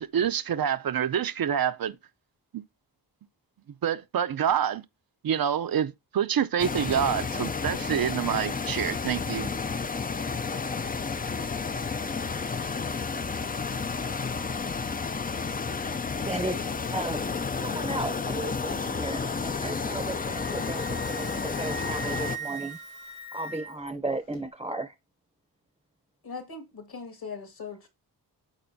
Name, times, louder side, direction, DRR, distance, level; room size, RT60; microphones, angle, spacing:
voice 1, 0.0-2.0 2.5-2.6 3.8-4.8 5.2-9.5, right 9 dB, 55° right, 0.6 m, -27 dB
sound 1, 6.6-22.4, left 5 dB, 20° left, 0.4 m, -31 dB
voice 2, 16.2-16.6 16.9-17.3 17.6-22.8 23.3-24.9, right 2 dB, 10° right, 0.7 m, -35 dB
Wind instrument woodwind instrument, 20.0-23.9, right 4 dB, 90° left, 1.7 m, -40 dB
voice 3, 26.2-27.9, left 5 dB, 55° left, 2.0 m, -40 dB
11.5 x 4.2 x 2.7 m
cardioid pair, 65°, 43 cm